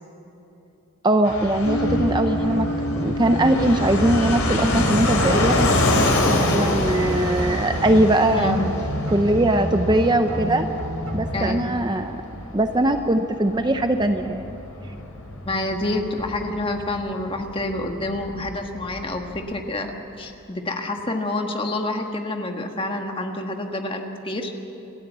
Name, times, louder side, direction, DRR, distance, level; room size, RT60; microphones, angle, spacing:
voice 1, 1.0-2.7 3.0-8.7 9.1-10.7 11.1-12.2 12.5-14.5, right 1 dB, 20° right, 7 dB, 0.6 m, -21 dB
Fixed-wing aircraft airplane, 1.2-19.6, left 1 dB, 80° left, 3.5 m, -27 dB
sound 1, 1.6-9.4, equal, 65° left, 0.6 m, -33 dB
sound 2, 1.7-11.6, equal, 80° right, 3.3 m, -29 dB
voice 2, 11.3-11.6 15.5-24.5, left 2 dB, 25° left, 4 dB, 1.4 m, -28 dB
28.0 x 12.5 x 8.1 m, 2.9 s
head